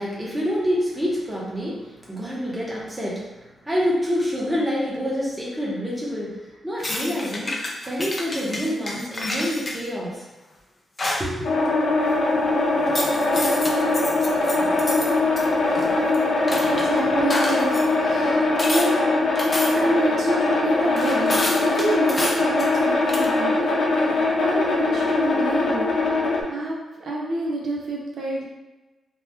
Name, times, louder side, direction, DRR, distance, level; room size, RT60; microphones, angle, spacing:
voice 1, 0.0-10.2 11.2-11.5, equal, 10° right, -6 dB, 0.8 m, -27 dB
sound 1, 6.8-9.8 11.0-11.3 12.9-15.1 15.4-16.9 17.3-17.8 18.6-18.9 19.4-19.9 21.0-22.8 23.1-23.3, left 1 dB, 25° left, 0.4 m, -29 dB
sound 2, 11.4-26.4, left 2 dB, 60° left, 0.6 m, -21 dB
voice 2, 16.5-19.0 19.7-25.9 26.5-28.4, right 2 dB, 60° right, -2 dB, 0.5 m, -28 dB
2.9 x 2.2 x 3.3 m, 1.1 s
wide cardioid pair, 150°, 0 cm